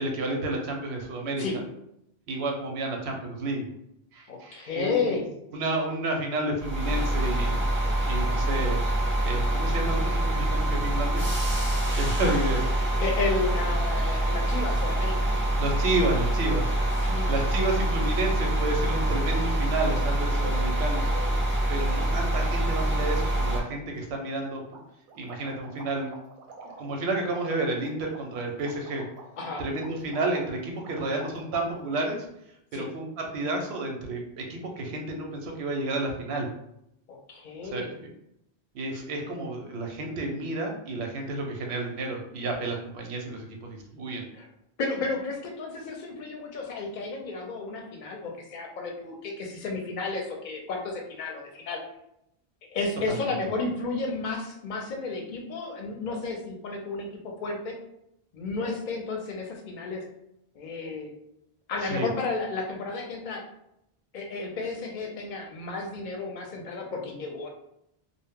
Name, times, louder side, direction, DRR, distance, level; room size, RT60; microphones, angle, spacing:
voice 1, 0.0-1.4 2.3-3.7 4.1-5.1 5.5-7.7 8.1-8.8 9.2-11.2 12.0-12.6 15.6-21.1 21.4-24.6 25.1-26.1 26.8-29.0 29.6-32.2 32.7-36.5 37.7-38.1 38.7-44.3 53.1-53.2 61.8-62.1, right 2 dB, 90° right, 2 dB, 0.8 m, -31 dB
voice 2, 4.3-5.3 12.2-12.4 13.0-15.3 17.0-17.3 20.5-20.6 20.9-21.3 29.4-29.6 32.7-32.9 37.1-37.9 44.3-44.5 44.8-51.8 52.7-57.8 58.3-60.1 60.5-61.1 61.7-63.4 64.1-67.5, left 3 dB, 55° left, 1 dB, 0.6 m, -32 dB
sound 1, 6.6-23.6, right 1 dB, 15° right, 0.5 m, -25 dB
sound 2, 23.9-24.0 24.3-24.4 24.7-32.0, right 3 dB, 60° right, 0.6 m, -47 dB
2.1 x 2.0 x 3.5 m, 0.80 s
omnidirectional pair, 1.1 m